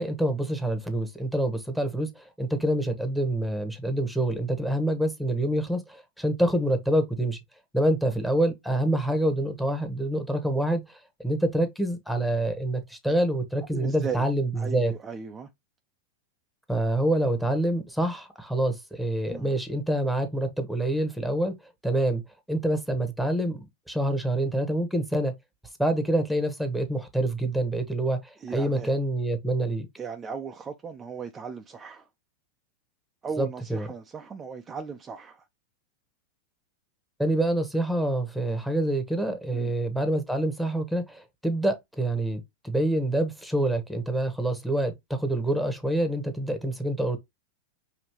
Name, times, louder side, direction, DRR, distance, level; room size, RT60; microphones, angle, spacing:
voice 1, 0.0-7.4 7.7-14.9 16.7-21.5 21.8-22.2 22.5-23.6 23.9-25.3 25.8-29.9 33.4-33.9 37.2-47.2, right 1 dB, ahead, 1.1 m, -26 dB
voice 2, 13.7-14.2 14.6-15.5 19.3-19.5 28.4-28.9 30.0-32.1 33.2-35.4 39.5-39.7, right 6 dB, 25° right, 0.5 m, -37 dB
5.2 x 2.8 x 2.9 m
hypercardioid pair, 100°, 0 cm